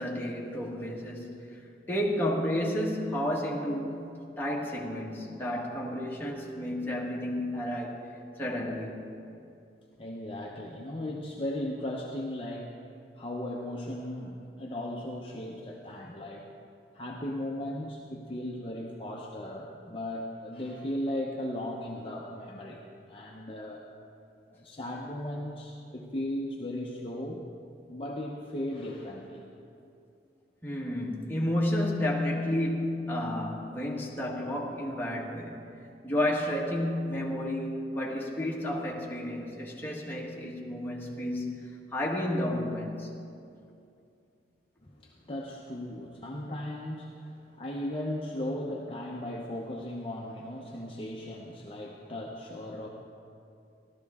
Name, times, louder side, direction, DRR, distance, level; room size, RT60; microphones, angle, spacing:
voice 1, 0.0-1.6 1.9-4.1 4.4-9.0 30.6-35.6 36.0-43.1, left 1 dB, 10° left, -4 dB, 1.4 m, -31 dB
voice 2, 10.0-12.7 13.2-16.5 16.9-23.8 24.5-27.4 27.9-29.5 44.8-52.9, left 1 dB, 30° left, -2 dB, 0.8 m, -37 dB
15.0 x 12.5 x 3.6 m, 2.5 s
head